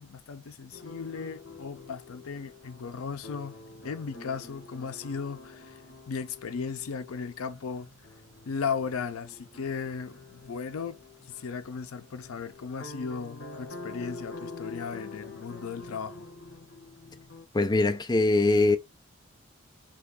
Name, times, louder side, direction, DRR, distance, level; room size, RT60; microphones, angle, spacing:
voice 1, 0.0-3.6 3.8-7.9 8.5-16.3, left 5 dB, 90° left, 0.5 m, -36 dB
sound 1, 0.7-17.5, left 3 dB, 55° left, 1.0 m, -46 dB
voice 2, 17.5-18.8, left 2 dB, 20° left, 0.4 m, -22 dB
3.3 x 2.3 x 3.5 m
head